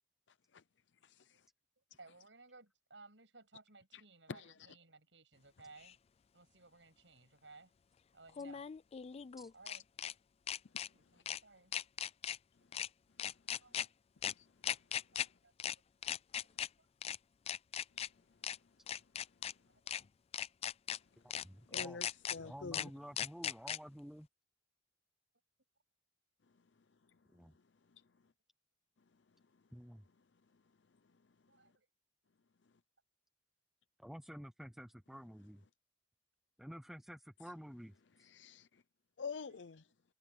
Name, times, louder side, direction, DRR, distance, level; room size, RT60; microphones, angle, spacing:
voice 1, 1.0-1.4 4.3-4.5 14.4-14.5 21.7-22.9 38.2-38.8 39.2-39.9, left 5 dB, 75° left, 0.6 m, -47 dB
voice 2, 2.0-6.0 6.3-7.7 8.1-8.7 9.5-9.8 10.9-11.7 13.6-14.0 15.1-15.5 16.3-16.9 19.7-20.1 31.5-31.9, right 3 dB, 85° right, 7.7 m, -60 dB
sound 1, 5.8-5.9 8.3-10.1 10.5-10.9 11.3-11.4 11.7-12.4 12.7-12.9 13.2-13.9 14.2-14.3 14.6-15.3 15.6-15.8 16.0-16.7 17.0-17.2 17.5-18.1 18.4-18.6 18.9-19.5 19.9-20.0 20.3-21.0 21.3-21.4 21.7-22.4 22.7-22.9 23.2-23.8, left 9 dB, 35° left, 0.3 m, -38 dB
voice 3, 21.2-22.0 22.3-24.3 27.3-27.5 29.7-30.0 34.0-35.6 36.6-38.3, equal, ahead, 0.6 m, -51 dB
head